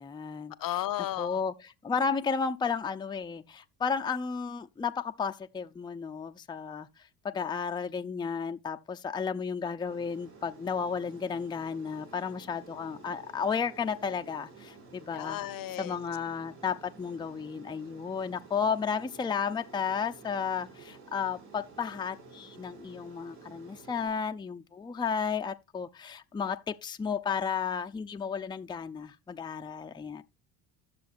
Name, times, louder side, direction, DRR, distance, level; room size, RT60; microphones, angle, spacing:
voice 1, 0.0-0.8 1.2-15.4 15.8-30.2, left 6 dB, 10° left, 0.5 m, -33 dB
voice 2, 0.6-1.4 15.1-16.0, left 14 dB, 45° left, 0.8 m, -34 dB
Aircraft, 9.9-24.1, right 4 dB, 75° right, 5.9 m, -52 dB
12.5 x 6.9 x 2.5 m
hypercardioid pair, 65°, 48 cm